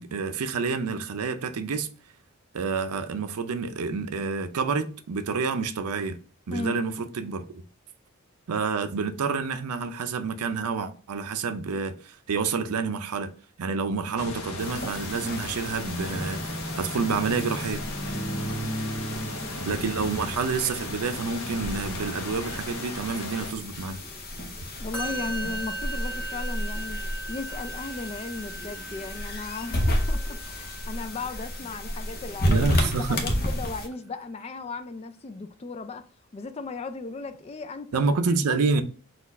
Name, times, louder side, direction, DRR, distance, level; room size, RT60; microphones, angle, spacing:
voice 1, 0.0-1.9 2.5-6.2 6.5-7.5 8.5-13.3 13.6-16.4 16.8-17.9 19.7-24.0 32.5-33.2 37.9-38.8, right 4 dB, 85° right, 0.5 m, -28 dB
voice 2, 6.5-6.8 18.5-19.8 24.8-32.7 32.9-36.1 36.3-38.0 38.4-38.8, left 3 dB, 25° left, 0.3 m, -36 dB
sound 1, 14.2-23.5, left 2 dB, 70° left, 0.8 m, -37 dB
sound 2, 14.6-33.9, equal, 40° left, 0.7 m, -32 dB
Musical instrument, 24.9-32.2, right 1 dB, 5° left, 1.3 m, -39 dB
4.2 x 2.4 x 4.0 m
head